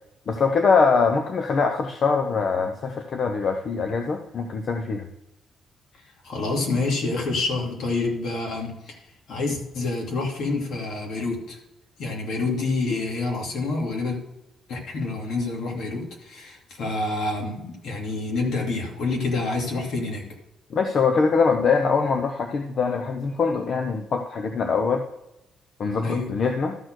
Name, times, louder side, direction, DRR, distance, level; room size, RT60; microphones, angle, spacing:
voice 1, 0.3-5.1 20.7-25.1 25.8-26.8, left 5 dB, 50° left, 5 dB, 0.8 m, -23 dB
voice 2, 6.2-9.0 9.3-11.6 12.0-14.2 14.7-20.2 26.0-26.3, left 3 dB, 75° left, 0 dB, 2.6 m, -27 dB
13.0 x 4.4 x 6.2 m, 0.94 s
cardioid pair, 90°, 0 cm